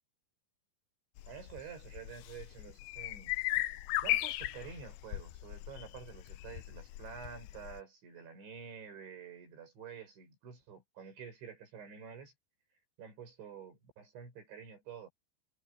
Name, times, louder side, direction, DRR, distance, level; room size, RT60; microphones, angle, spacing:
sound 1, 1.2-7.8, left 16 dB, 90° left, 2.0 m, -37 dB
voice 1, 1.2-3.4 4.0-12.3 13.0-15.1, right 6 dB, 80° right, 9.4 m, -49 dB
omnidirectional pair, 5.2 m